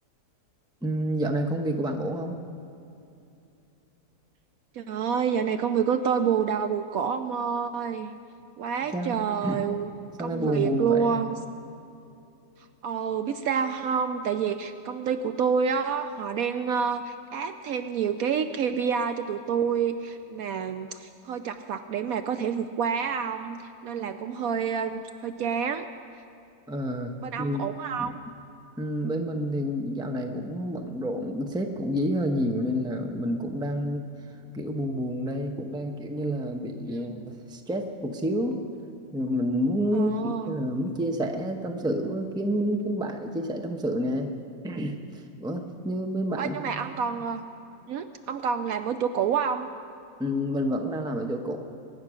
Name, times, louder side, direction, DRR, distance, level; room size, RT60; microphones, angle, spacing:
voice 1, 0.8-2.3 8.9-9.2 9.4-9.6 10.2-11.2 26.7-27.1 27.4-27.6 28.0-28.1 28.8-34.1 34.5-38.6 39.1-44.3 44.6-46.8 50.2-51.6, equal, 5° right, 4 dB, 0.7 m, -29 dB
voice 2, 4.7-8.1 8.6-9.9 10.2-11.4 12.8-25.9 27.2-28.1 37.0-37.3 39.9-40.5 46.4-47.4 47.9-49.7, right 7 dB, 70° right, 9 dB, 0.9 m, -28 dB
23.0 x 9.7 x 6.3 m, 2.7 s
omnidirectional pair, 1.8 m